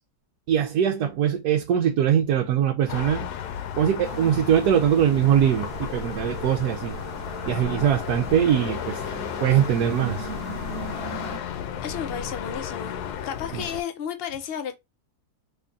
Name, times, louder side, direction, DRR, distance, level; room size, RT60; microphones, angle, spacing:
voice 1, 0.5-3.3 3.8-7.0 7.5-9.0 9.4-10.3 13.5-13.6, right 9 dB, 85° right, 1.1 m, -22 dB
sound 1, 2.9-13.8, left 8 dB, 90° left, 1.1 m, -33 dB
sound 2, 4.0-11.4, right 5 dB, 55° right, 1.1 m, -40 dB
voice 2, 11.8-14.7, left 8 dB, 65° left, 0.5 m, -33 dB
3.5 x 3.1 x 2.5 m
omnidirectional pair, 1.6 m